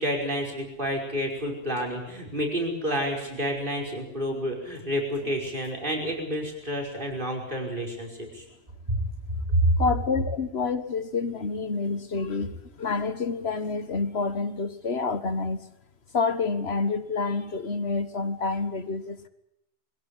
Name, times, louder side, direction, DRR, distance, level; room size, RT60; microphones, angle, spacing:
voice 1, 0.0-8.4 8.9-9.0 9.5-9.8, equal, 50° right, 1 dB, 5.5 m, -29 dB
voice 2, 9.8-15.6 16.1-19.3, left 4 dB, 70° left, 11 dB, 1.6 m, -28 dB
22.5 x 16.5 x 9.9 m, 0.83 s
omnidirectional pair, 1.1 m